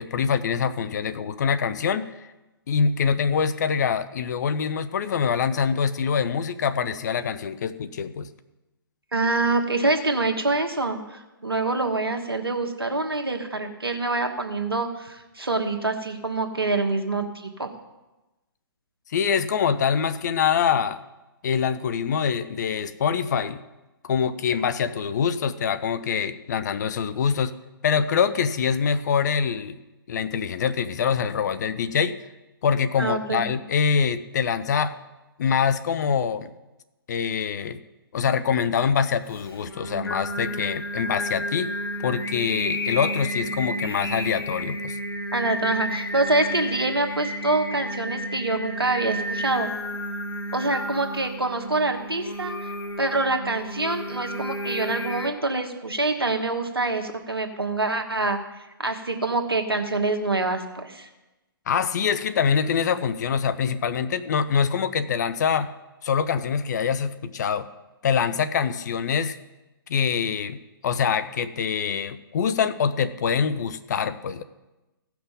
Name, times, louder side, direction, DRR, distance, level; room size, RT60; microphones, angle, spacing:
voice 1, 0.0-2.1 2.7-8.3 19.1-21.0 21.4-23.6 24.0-27.5 27.8-29.8 30.1-32.2 32.6-34.9 35.4-36.5 37.1-37.8 38.1-41.7 42.0-45.0 61.7-65.7 66.0-67.7 68.0-69.4 69.9-70.6 70.8-74.4, left 7 dB, 50° left, 12 dB, 0.6 m, -24 dB
voice 2, 9.1-17.7 33.0-33.4 45.3-49.7 50.5-52.5 53.0-58.4 58.8-61.1, right 2 dB, 80° right, 5 dB, 1.4 m, -25 dB
Singing, 39.3-55.3, equal, 75° left, 1.2 m, -31 dB
16.0 x 5.9 x 5.5 m, 1.0 s
figure-of-eight pair, 125°, 12 cm